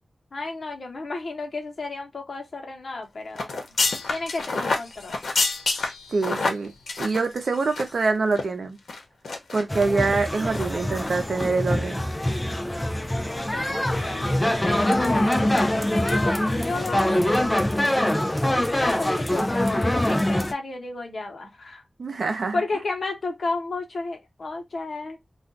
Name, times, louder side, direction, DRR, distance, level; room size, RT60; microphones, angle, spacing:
voice 1, 0.3-3.6 4.1-5.1 9.8-10.1 13.0-17.2 18.7-21.8 22.5-25.2, left 3 dB, 60° left, 0.9 m, -32 dB
sound 1, 3.4-8.1 8.3-8.4 8.9-9.6 10.0-10.2 10.5-10.7 11.0-11.1, left 3 dB, 90° left, 0.7 m, -28 dB
voice 2, 6.1-6.7 7.0-8.8 9.5-12.0 22.0-22.6, right 4 dB, 70° right, 0.7 m, -25 dB
sound 2, 9.7-20.5, left 1 dB, 15° left, 0.4 m, -24 dB
2.4 x 2.3 x 3.7 m
wide cardioid pair, 110°, 0 cm